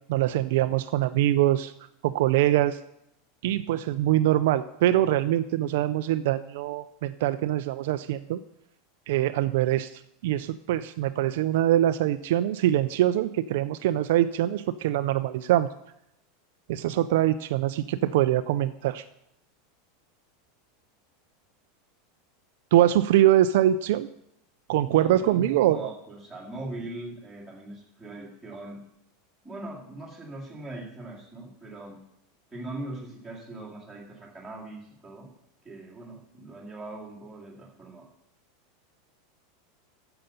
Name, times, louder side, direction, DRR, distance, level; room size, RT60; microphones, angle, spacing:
voice 1, 0.1-1.7 2.0-2.8 3.4-8.4 9.1-15.7 16.7-19.0 22.7-24.1 24.7-25.9, right 13 dB, 60° right, 11 dB, 0.4 m, -23 dB
voice 2, 24.8-28.9 29.4-32.0 32.5-35.3 35.6-38.1, right 2 dB, ahead, -6 dB, 2.1 m, -40 dB
9.1 x 6.8 x 6.8 m, 0.80 s
supercardioid pair, 180°, 0 cm